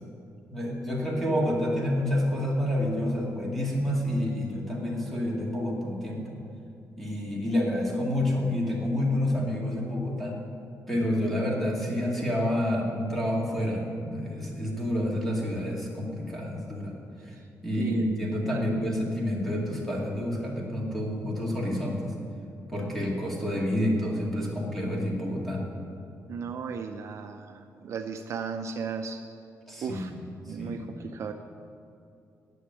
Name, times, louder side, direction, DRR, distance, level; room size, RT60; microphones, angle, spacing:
voice 1, 0.5-6.4 7.0-10.4 10.9-16.9 17.6-22.1 22.7-25.6 29.7-30.2 30.6-30.8, left 1 dB, 5° left, -3 dB, 2.2 m, -28 dB
voice 2, 17.8-18.1 18.5-18.8 26.3-29.2 29.8-30.1 30.4-31.3, right 6 dB, 50° right, 5 dB, 0.6 m, -35 dB
10.0 x 7.1 x 9.0 m, 2.6 s
cardioid pair, 160°, 6 cm